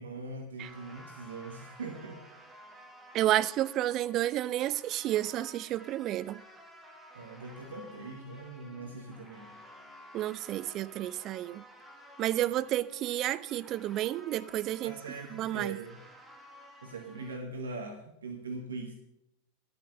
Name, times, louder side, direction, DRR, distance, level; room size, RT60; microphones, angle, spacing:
voice 1, 0.0-2.2 7.1-9.6 14.8-16.0 16.8-18.9, right 3 dB, 70° right, 1.5 m, -41 dB
sound 1, 0.6-17.4, equal, 5° right, 1.7 m, -53 dB
voice 2, 3.1-6.4 10.1-11.6 12.2-14.9 15.3-15.8, right 13 dB, 35° right, 0.4 m, -31 dB
11.5 x 8.2 x 6.7 m
figure-of-eight pair, 90°, 0 cm